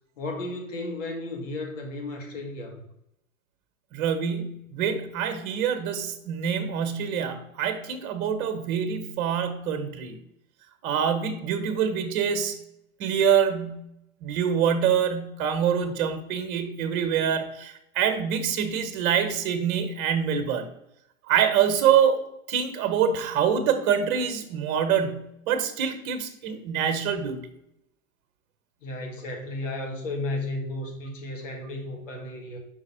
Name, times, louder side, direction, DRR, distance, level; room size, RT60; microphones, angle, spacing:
voice 1, 0.2-2.8 28.8-32.6, left 2 dB, 65° left, 1 dB, 2.0 m, -34 dB
voice 2, 3.9-10.1 10.8-12.6 13.0-13.8 14.2-20.7 21.3-22.2 22.5-27.4, right 8 dB, 40° right, 8 dB, 1.1 m, -25 dB
5.6 x 4.7 x 4.3 m, 0.80 s
hypercardioid pair, 105°, 41 cm